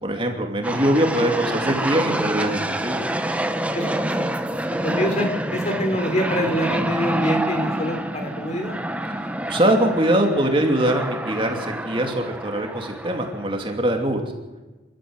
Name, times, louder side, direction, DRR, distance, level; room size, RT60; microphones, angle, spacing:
voice 1, 0.0-3.0 9.1-14.2, right 1 dB, 25° right, 3 dB, 2.6 m, -22 dB
sound 1, 0.6-13.8, right 1 dB, 5° right, 1.0 m, -27 dB
voice 2, 3.7-4.3 4.8-8.8, equal, 35° left, 6 dB, 3.3 m, -25 dB
28.5 x 13.0 x 8.1 m, 1.2 s
head